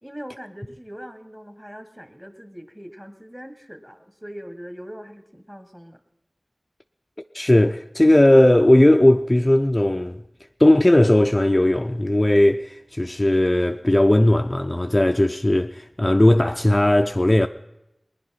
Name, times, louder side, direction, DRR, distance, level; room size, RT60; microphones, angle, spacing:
voice 1, 0.0-6.0, equal, 5° right, 1.4 m, -41 dB
voice 2, 7.3-10.2 10.6-17.5, left 1 dB, 25° left, 0.4 m, -17 dB
20.5 x 10.0 x 5.8 m
wide cardioid pair, 60°, 0 cm